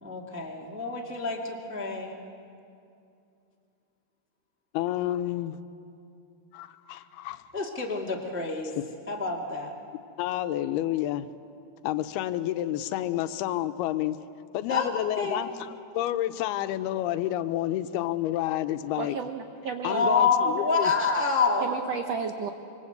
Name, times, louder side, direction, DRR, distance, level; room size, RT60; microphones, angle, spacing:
voice 1, 0.0-2.2 7.5-8.7 9.1-9.7 14.7-15.4 19.8-21.7, left 4 dB, 10° right, -1 dB, 0.7 m, -27 dB
voice 2, 4.7-5.6 6.5-7.5 10.2-11.3 11.8-14.2 14.5-19.2 19.8-20.9, left 13 dB, 90° left, 11 dB, 2.7 m, -29 dB
voice 3, 19.0-20.1 21.6-22.5, right 6 dB, 85° right, 5 dB, 1.4 m, -33 dB
26.0 x 24.5 x 8.0 m, 2.6 s
omnidirectional pair, 4.4 m